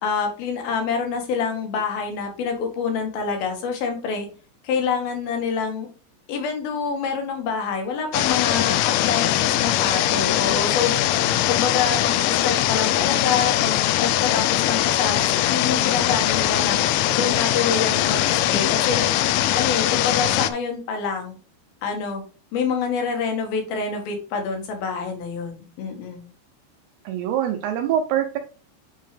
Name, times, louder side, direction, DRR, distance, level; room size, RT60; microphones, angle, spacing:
voice 1, 0.0-4.3 4.6-5.9 6.3-10.9 11.5-15.2 15.5-16.8 17.1-19.0 19.5-21.4 21.8-22.2 22.5-26.3, left 5 dB, 65° left, 4 dB, 3.1 m, -26 dB
sound 1, 8.1-20.5, left 13 dB, 90° left, 3.0 m, -21 dB
voice 2, 27.0-28.4, right 10 dB, 75° right, 4 dB, 2.6 m, -24 dB
9.1 x 4.4 x 3.3 m, 0.36 s
omnidirectional pair, 5.1 m